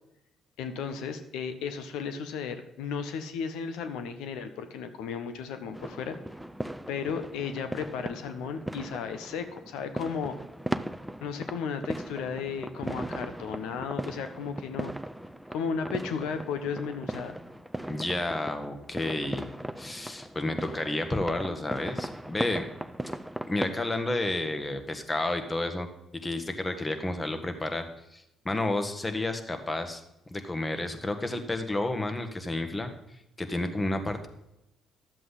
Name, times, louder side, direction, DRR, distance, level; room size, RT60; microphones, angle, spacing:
voice 1, 0.6-6.2 6.9-10.3 11.2-14.9 15.5-17.4, left 6 dB, 80° left, 9 dB, 0.7 m, -34 dB
sound 1, 5.7-23.9, right 1 dB, 5° right, 0.5 m, -38 dB
voice 2, 17.9-19.5 19.8-22.6 23.5-25.9 26.2-27.9 28.1-30.0 30.3-32.9 33.4-34.3, left 2 dB, 20° left, 7 dB, 1.4 m, -31 dB
11.5 x 7.6 x 4.0 m, 0.87 s
hypercardioid pair, 55°, 0 cm